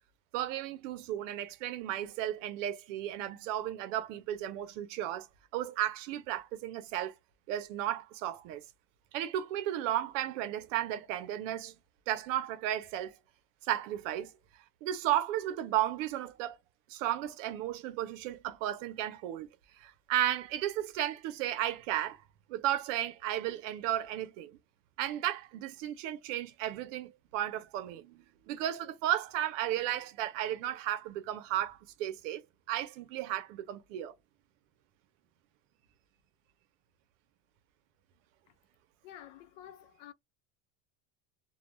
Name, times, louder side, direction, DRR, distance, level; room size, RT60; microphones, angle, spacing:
voice 1, 0.3-5.3 5.5-7.1 7.5-8.6 9.1-11.7 12.1-13.2 13.7-14.3 14.8-16.6 16.9-19.5 19.8-22.2 22.5-24.6 25.0-34.1, right 12 dB, 70° right, 0.6 m, -34 dB
voice 2, 39.0-40.1, left 11 dB, 70° left, 0.6 m, -50 dB
2.3 x 2.2 x 3.0 m
cardioid pair, 175°, 39 cm